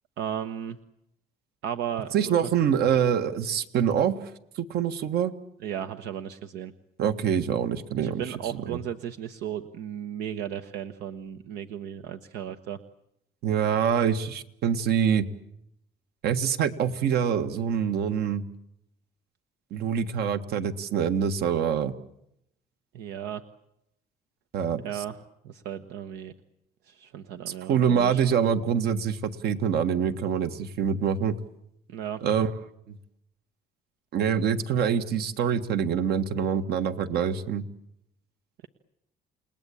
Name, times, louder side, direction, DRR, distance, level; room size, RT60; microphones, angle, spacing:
voice 1, 0.2-0.8 1.6-2.5 5.6-6.7 8.0-12.8 22.9-23.4 24.8-25.2 25.4-26.3 26.9-28.2 31.9-32.2, right 9 dB, 85° right, 9 dB, 1.2 m, -35 dB
voice 2, 2.1-4.2 4.6-5.3 7.0-8.2 8.5-8.8 13.4-15.2 16.2-18.4 19.7-21.9 24.5-25.0 27.5-31.4 32.2-32.5 32.9-33.0 34.1-37.6, right 8 dB, 70° right, 9 dB, 1.8 m, -25 dB
29.5 x 19.5 x 8.6 m, 0.79 s
cardioid pair, 110°, 17 cm